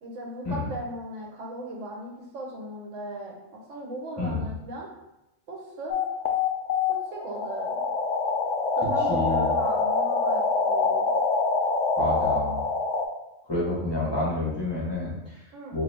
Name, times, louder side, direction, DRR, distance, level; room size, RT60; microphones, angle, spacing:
voice 1, 0.0-4.9 5.5-6.0 6.9-7.8 8.8-11.1 15.5-15.8, right 1 dB, 80° right, -1 dB, 1.2 m, -37 dB
sound 1, 5.9-13.1, left 4 dB, 80° left, 0.9 m, -25 dB
voice 2, 9.1-9.5 12.0-12.6 13.5-15.4 15.7-15.8, left 2 dB, 20° left, -8 dB, 1.1 m, -28 dB
3.9 x 2.7 x 3.3 m, 0.91 s
omnidirectional pair, 1.3 m